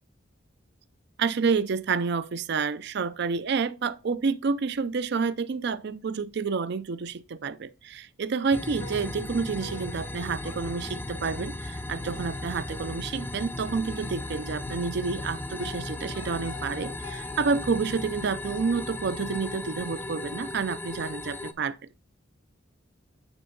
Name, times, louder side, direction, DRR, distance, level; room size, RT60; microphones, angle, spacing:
voice 1, 1.2-21.8, right 5 dB, 60° right, 0.5 m, -29 dB
sound 1, 8.5-21.5, left 2 dB, 10° left, 0.5 m, -36 dB
sound 2, 8.8-17.8, left 4 dB, 80° left, 0.7 m, -49 dB
8.9 x 3.6 x 3.9 m
head